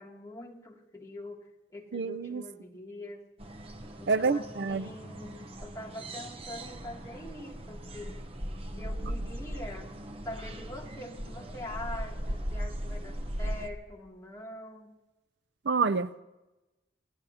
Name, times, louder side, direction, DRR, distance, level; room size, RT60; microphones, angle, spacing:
voice 1, 0.0-3.2 4.0-8.2 8.7-9.9 10.2-14.9, left 1 dB, 20° left, 2.5 m, -44 dB
voice 2, 1.9-2.4 4.1-4.8 15.7-16.1, right 4 dB, 65° right, 0.5 m, -27 dB
sound 1, 3.4-13.7, equal, 30° right, 0.9 m, -38 dB
28.0 x 16.0 x 2.8 m
head